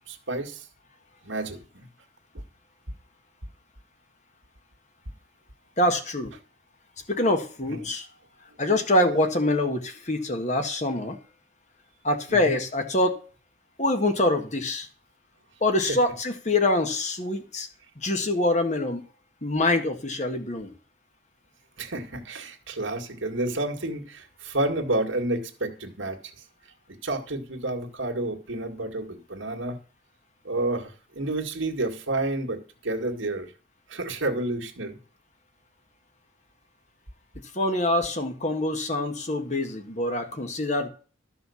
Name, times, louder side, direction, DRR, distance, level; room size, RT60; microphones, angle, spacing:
voice 1, 0.1-0.7 1.2-1.9 7.7-7.9 12.3-12.6 15.9-16.0 21.8-26.3 26.9-29.8 30.4-33.5 33.9-35.0, right 2 dB, 85° right, 3 dB, 2.0 m, -30 dB
voice 2, 5.8-6.3 7.1-8.1 8.6-11.2 12.0-13.2 13.8-14.9 15.6-17.7 18.0-19.0 19.4-20.7 37.5-40.9, left 1 dB, 40° left, 6 dB, 1.7 m, -25 dB
13.0 x 5.7 x 7.1 m, 0.38 s
head